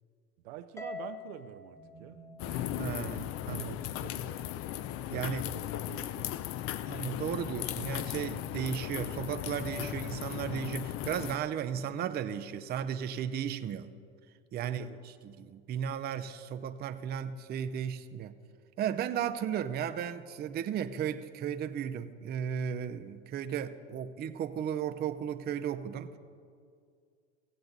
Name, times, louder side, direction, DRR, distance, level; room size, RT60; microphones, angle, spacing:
voice 1, 0.4-4.4 5.1-6.5 7.3-7.6 14.6-15.0, right 11 dB, 70° right, 11 dB, 0.7 m, -48 dB
Harp, 0.8-3.2, left 3 dB, 10° left, 0.8 m, -45 dB
sound 1, 1.7-10.6, right 4 dB, 65° left, 2.5 m, -60 dB
sound 2, 2.4-11.4, left 13 dB, 45° left, 0.4 m, -37 dB
voice 2, 2.8-3.2 3.5-3.8 5.1-5.5 6.8-13.9 14.5-14.9 15.2-18.3 18.8-26.2, right 8 dB, 30° right, 9 dB, 0.5 m, -35 dB
16.0 x 7.8 x 4.0 m, 2.2 s
hypercardioid pair, 85°, 32 cm